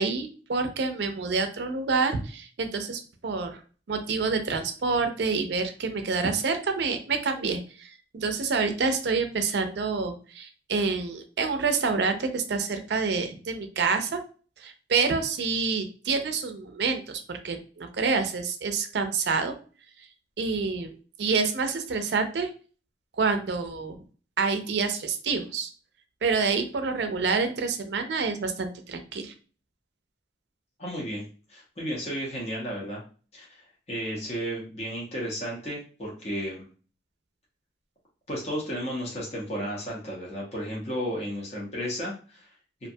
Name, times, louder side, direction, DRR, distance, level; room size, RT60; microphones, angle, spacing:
voice 1, 0.0-3.6 3.9-14.2 14.6-19.5 20.4-20.9 21.2-22.5 23.2-24.0 24.4-25.7 26.2-29.3, right 4 dB, 70° right, 7 dB, 0.4 m, -27 dB
voice 2, 30.8-31.2 31.5-33.0 33.3-36.7 38.3-42.5, equal, 35° left, -4 dB, 0.7 m, -33 dB
2.5 x 2.2 x 2.6 m, 0.38 s
head